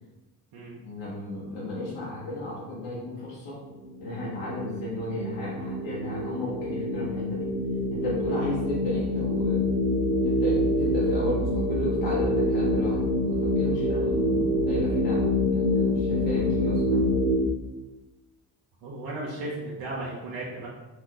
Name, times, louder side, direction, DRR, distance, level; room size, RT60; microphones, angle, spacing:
voice 1, 0.8-3.6 4.0-7.5 7.9-9.6 10.2-17.0, left 1 dB, 65° left, -6 dB, 1.0 m, -33 dB
sound 1, 3.6-17.4, left 1 dB, 85° right, 0.6 m, -26 dB
voice 2, 18.8-20.7, right 2 dB, 55° right, -4 dB, 0.8 m, -35 dB
2.8 x 2.4 x 3.5 m, 1.1 s
hypercardioid pair, 50°, 48 cm